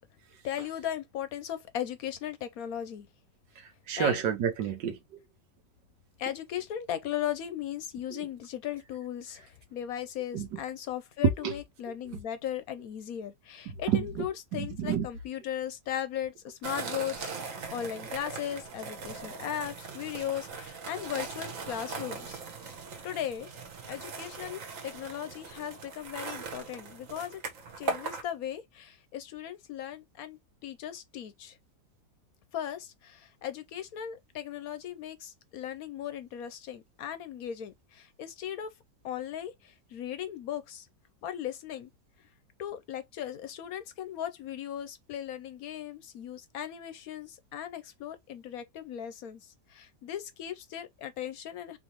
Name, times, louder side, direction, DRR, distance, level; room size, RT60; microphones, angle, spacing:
voice 1, 0.4-3.1 4.0-4.2 6.2-22.4 23.0-23.5 23.9-27.4 27.8-31.6 32.5-38.7 39.0-40.9 41.2-41.9 42.6-51.8, left 10 dB, 70° left, 0.9 m, -37 dB
voice 2, 3.6-5.2 8.1-8.3 10.3-10.6 11.2-11.6 13.7-15.1, right 7 dB, 85° right, 1.5 m, -30 dB
sound 1, 16.6-28.2, right 4 dB, 55° right, 1.3 m, -40 dB
4.4 x 3.2 x 2.9 m
omnidirectional pair, 1.8 m